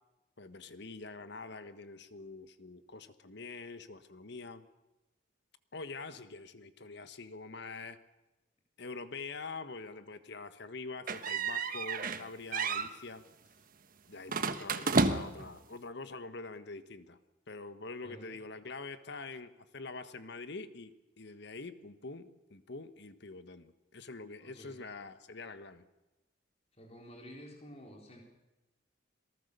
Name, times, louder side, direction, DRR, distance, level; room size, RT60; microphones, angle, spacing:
voice 1, 0.4-4.6 5.7-8.0 8.8-13.2 14.1-17.2 17.5-25.8, left 3 dB, 60° left, 12 dB, 1.3 m, -45 dB
sound 1, 11.1-12.2 12.5-12.9 14.3-15.5, right 4 dB, 45° right, 1.2 m, -31 dB
voice 2, 18.0-18.4 24.4-24.8 26.8-28.2, equal, 35° left, 0 dB, 3.8 m, -51 dB
27.0 x 18.5 x 6.8 m, 1.0 s
head